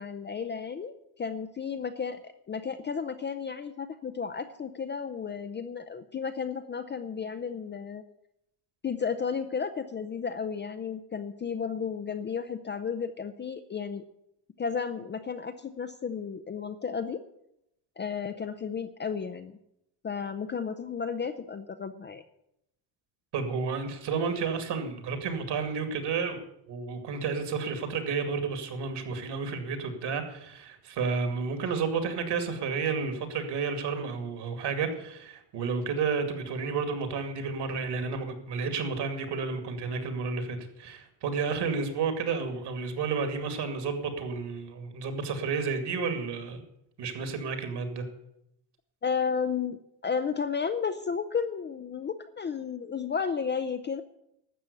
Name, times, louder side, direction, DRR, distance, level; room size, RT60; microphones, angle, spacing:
voice 1, 0.0-8.0 8.8-14.0 14.6-17.2 18.0-19.6 20.0-22.2 49.0-49.8 50.0-54.0, left 6 dB, 25° left, 8 dB, 0.5 m, -33 dB
voice 2, 23.3-26.4 26.7-46.6 47.0-48.0, right 5 dB, 55° right, 7 dB, 2.5 m, -31 dB
12.5 x 7.6 x 8.2 m, 0.81 s
cardioid pair, 135°, 50 cm